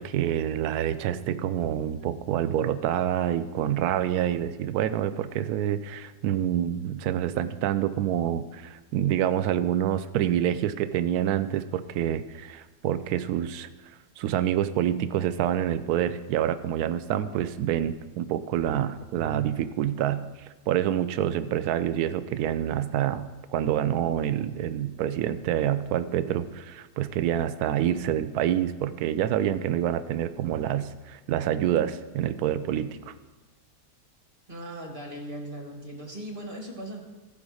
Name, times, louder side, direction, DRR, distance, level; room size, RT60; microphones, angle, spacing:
voice 1, 0.0-13.7 14.2-33.1, right 11 dB, 70° right, 13 dB, 1.0 m, -27 dB
voice 2, 34.5-37.0, right 1 dB, 30° right, 2 dB, 1.5 m, -38 dB
14.5 x 5.0 x 6.3 m, 1.2 s
omnidirectional pair, 1.9 m